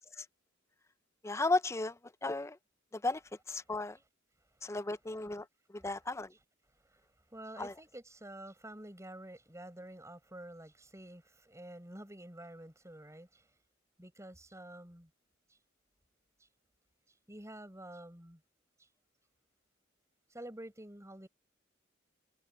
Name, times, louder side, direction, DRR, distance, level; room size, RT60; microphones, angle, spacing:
voice 1, 1.2-1.9 2.2-2.6 2.9-3.2 3.5-4.0 4.6-5.5 5.8-6.3 7.6-7.7, left 2 dB, 15° left, 0.5 m, -34 dB
voice 2, 6.8-13.5 14.0-15.1 15.5-15.6 16.4-16.5 17.1-18.4 18.8-18.9 20.3-21.3, right 1 dB, 15° right, 7.7 m, -49 dB
head